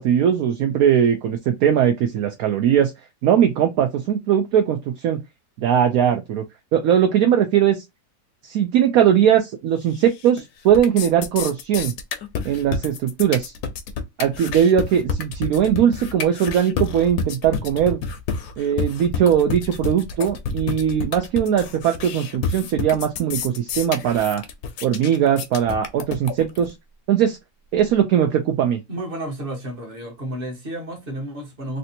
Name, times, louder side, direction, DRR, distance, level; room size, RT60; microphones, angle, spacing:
voice 1, 0.0-2.9 3.2-5.2 5.6-6.4 6.7-7.8 8.4-11.9 12.4-13.5 14.2-18.0 18.6-24.4 24.8-26.7 27.1-27.4 27.7-28.8, right 9 dB, 70° right, 1.0 m, -19 dB
sound 1, 9.9-10.4 10.7-26.7, left 5 dB, 70° left, 1.1 m, -29 dB
voice 2, 28.9-31.8, right 1 dB, 35° right, 1.3 m, -31 dB
3.3 x 2.7 x 2.7 m
omnidirectional pair, 1.8 m